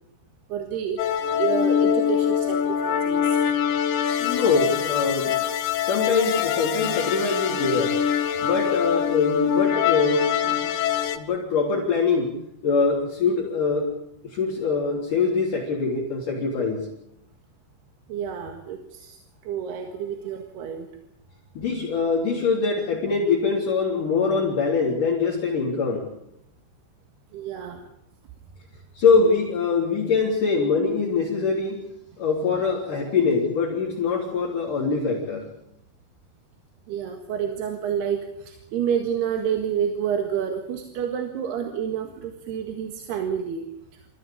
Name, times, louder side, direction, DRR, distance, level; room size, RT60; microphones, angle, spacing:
voice 1, 0.5-3.4 18.1-19.2 19.4-20.9 27.3-27.8 36.9-43.7, right 8 dB, 70° right, 5 dB, 3.7 m, -29 dB
sound 1, 1.0-11.2, left 8 dB, 65° left, 2.7 m, -24 dB
voice 2, 4.2-5.4 5.8-8.0 8.4-10.6 11.1-12.3 12.6-13.9 14.2-16.9 21.5-26.1 28.9-31.9 32.2-35.5, left 4 dB, 50° left, -4 dB, 4.9 m, -23 dB
27.0 x 16.0 x 8.8 m, 0.81 s
omnidirectional pair, 5.0 m